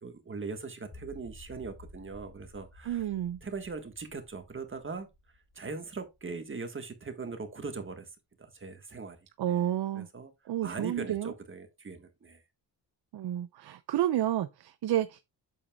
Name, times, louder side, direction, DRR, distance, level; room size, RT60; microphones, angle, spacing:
voice 1, 0.0-3.0 3.4-5.1 5.5-8.1 8.4-9.2 9.5-9.7 9.9-10.3 10.6-12.4, right 4 dB, 30° right, 1.4 m, -40 dB
sound 1, 0.9-7.0, left 1 dB, 25° left, 3.4 m, -54 dB
voice 2, 2.9-3.4 9.4-10.1 10.5-11.3 13.1-15.2, right 12 dB, 70° right, 0.6 m, -30 dB
8.4 x 7.1 x 2.3 m
cardioid pair, 115°, 41 cm